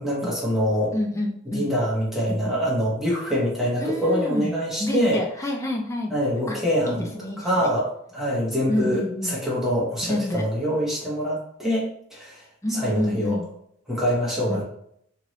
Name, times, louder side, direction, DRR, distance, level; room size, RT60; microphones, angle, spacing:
voice 1, 0.0-0.9 1.4-5.2 6.1-7.1 7.4-12.4 12.7-13.4 13.9-14.6, equal, ahead, -7 dB, 1.1 m, -25 dB
voice 2, 0.9-1.7 3.8-4.5 4.8-6.1 6.5-6.6 6.9-7.7 8.7-9.4 10.0-10.5 12.6-13.4 14.5-14.6, left 1 dB, 15° left, 1 dB, 0.5 m, -28 dB
2.8 x 2.7 x 3.0 m, 0.70 s
head